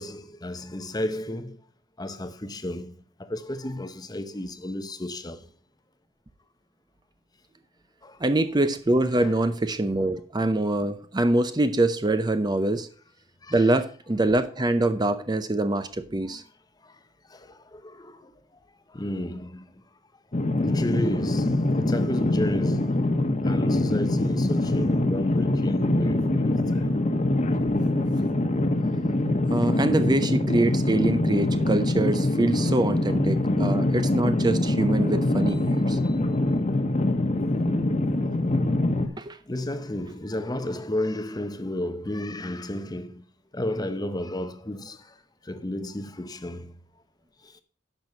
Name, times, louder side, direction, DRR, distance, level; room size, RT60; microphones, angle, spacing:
voice 1, 0.0-1.6 2.0-2.9 3.2-5.4 8.0-8.2 9.1-9.4 13.4-13.8 16.1-16.4 17.3-18.3 18.9-19.7 20.6-23.1 23.4-26.8 33.3-33.6 36.0-36.2 39.5-43.2 43.5-45.1 45.4-46.8 47.5-47.6, left 1 dB, 20° left, 0.7 m, -32 dB
voice 2, 8.2-12.9 13.5-16.4 28.9-29.0 29.5-36.0 39.2-39.4, right 2 dB, 20° right, 0.6 m, -24 dB
sound 1, 20.3-39.1, left 1 dB, 35° left, 1.1 m, -24 dB
10.5 x 6.2 x 5.3 m
head